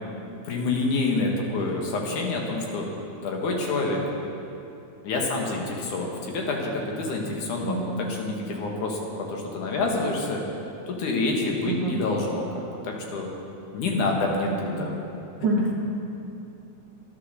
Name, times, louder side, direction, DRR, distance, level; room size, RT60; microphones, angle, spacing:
voice 1, 0.4-2.9 3.2-4.0 5.0-10.4 10.9-13.3 13.7-14.9, left 3 dB, 90° left, 0 dB, 3.1 m, -27 dB
voice 2, 15.4-15.7, right 2 dB, 80° right, -1 dB, 1.0 m, -25 dB
11.5 x 10.5 x 6.6 m, 2.8 s
omnidirectional pair, 3.4 m